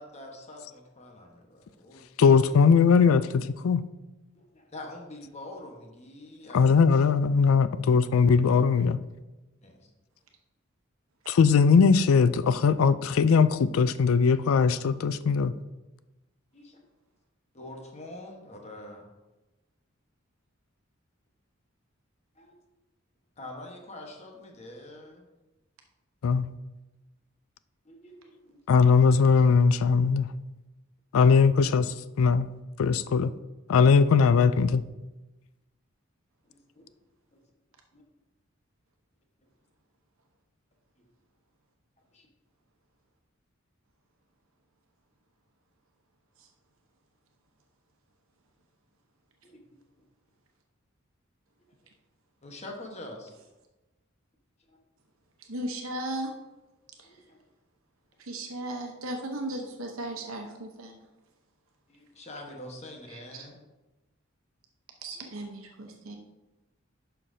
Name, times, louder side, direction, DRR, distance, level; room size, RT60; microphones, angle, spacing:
voice 1, 0.0-2.4 4.3-6.6 9.6-9.9 16.5-16.8 17.5-19.1 22.3-22.5 23.4-25.3 27.8-29.3 36.5-36.8 37.3-37.4 37.9-38.0 42.1-42.3 49.4-49.6 52.4-53.3 54.7-54.8 57.0-57.4 58.3-58.7 60.1-60.2 61.9-63.6 65.1-65.3, left 1 dB, 35° left, 1 dB, 1.2 m, -45 dB
voice 2, 2.2-3.8 6.5-9.0 11.3-15.5 26.2-26.5 28.7-30.3 31.1-32.5 32.8-33.3 33.7-34.8, left 5 dB, 90° left, 14 dB, 0.4 m, -20 dB
voice 3, 55.5-56.3 57.0-57.1 58.2-61.1 63.1-63.4 65.0-66.2, right 1 dB, 85° right, 2 dB, 0.9 m, -36 dB
11.0 x 5.8 x 2.7 m, 1.1 s
head